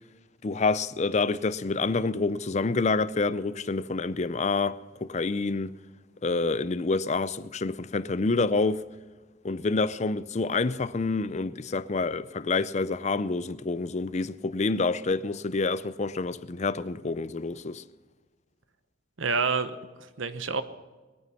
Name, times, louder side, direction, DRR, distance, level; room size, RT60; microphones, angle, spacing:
voice 1, 0.4-5.8 6.2-8.8 9.4-17.8, left 3 dB, 35° left, 0.5 m, -27 dB
voice 2, 19.2-20.6, right 5 dB, 85° right, 1.0 m, -28 dB
21.0 x 9.2 x 5.7 m
head